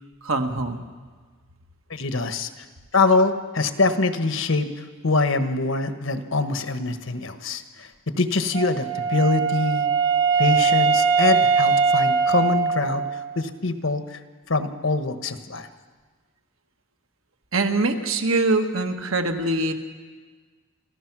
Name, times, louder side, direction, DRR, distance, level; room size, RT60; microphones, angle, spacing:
voice 1, 0.2-0.8 17.5-19.7, right 2 dB, 90° right, 5 dB, 1.6 m, -23 dB
voice 2, 1.9-2.6 2.9-9.9 10.4-14.2 14.5-15.7, left 3 dB, 80° left, 9 dB, 1.3 m, -24 dB
Wind instrument woodwind instrument, 8.5-13.3, right 5 dB, 60° right, 1.3 m, -21 dB
28.5 x 15.0 x 6.1 m, 1.5 s
head